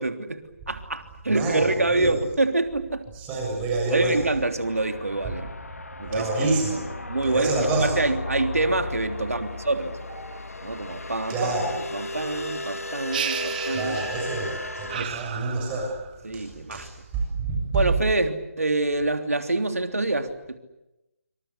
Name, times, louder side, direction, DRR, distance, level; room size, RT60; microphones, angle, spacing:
voice 1, 0.0-3.1 3.9-5.5 6.0-6.5 7.1-10.0 10.6-14.0 14.9-15.2 16.2-16.9 17.7-20.6, right 2 dB, 80° right, 7 dB, 3.2 m, -26 dB
voice 2, 1.3-2.1 3.1-4.3 6.1-6.9 7.2-7.9 10.1-10.2 11.3-11.7 13.7-16.0 16.3-17.9, right 3 dB, 15° right, 1 dB, 7.1 m, -27 dB
sound 1, 4.6-15.1, left 2 dB, 80° left, 1.8 m, -35 dB
sound 2, 13.1-14.5 14.9-16.2, right 9 dB, 35° right, 1.5 m, -33 dB
26.5 x 25.5 x 8.4 m, 0.94 s
figure-of-eight pair, 145°, 8 cm